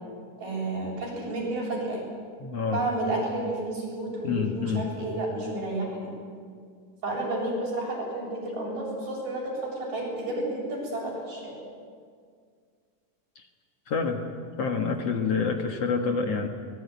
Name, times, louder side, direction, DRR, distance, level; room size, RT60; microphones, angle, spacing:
voice 1, 0.4-2.0 2.7-6.1 7.0-11.5, right 2 dB, 75° right, -3 dB, 9.4 m, -31 dB
voice 2, 2.4-2.8 4.2-4.9 13.4-13.5 13.9-14.2 14.6-16.5, left 5 dB, 55° left, 4 dB, 2.3 m, -27 dB
24.5 x 20.5 x 9.5 m, 2.1 s
omnidirectional pair, 3.8 m